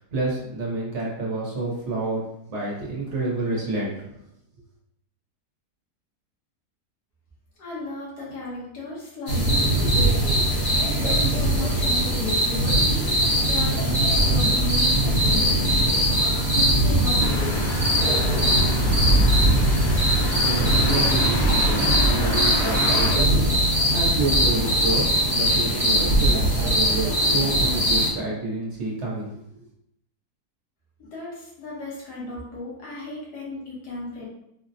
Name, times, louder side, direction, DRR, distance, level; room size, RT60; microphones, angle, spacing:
voice 1, 0.0-4.1 20.4-29.7, right 3 dB, 55° right, -4 dB, 0.9 m, -29 dB
voice 2, 7.6-15.9 16.6-17.7 31.0-34.3, left 3 dB, 90° left, -5 dB, 1.6 m, -35 dB
sound 1, 9.3-28.1, right 1 dB, 40° left, 0.6 m, -21 dB
sound 2, 17.2-23.2, left 1 dB, 70° left, 1.2 m, -29 dB
3.9 x 2.0 x 2.6 m, 0.78 s
omnidirectional pair, 1.7 m